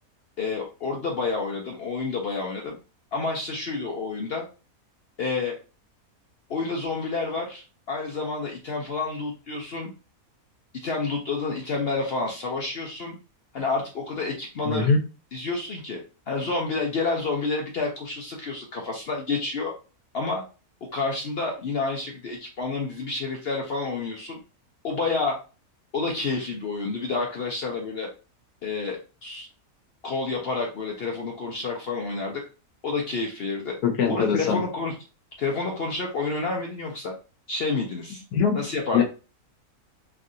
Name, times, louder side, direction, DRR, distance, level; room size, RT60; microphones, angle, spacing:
voice 1, 0.4-2.8 3.1-4.5 5.2-5.6 6.5-9.9 10.8-13.2 13.5-14.9 15.3-16.0 16.3-19.7 20.1-20.4 20.9-24.4 24.8-25.4 25.9-28.1 28.6-29.5 30.0-32.4 32.8-33.8 34.1-34.9 35.4-37.2 37.5-38.2 38.5-39.0, left 3 dB, 60° left, 0 dB, 0.6 m, -29 dB
voice 2, 14.6-15.0 33.8-34.6 38.3-38.6 38.9-39.0, left 5 dB, 85° left, 3 dB, 1.2 m, -22 dB
3.2 x 2.7 x 2.5 m, 0.33 s
omnidirectional pair, 1.6 m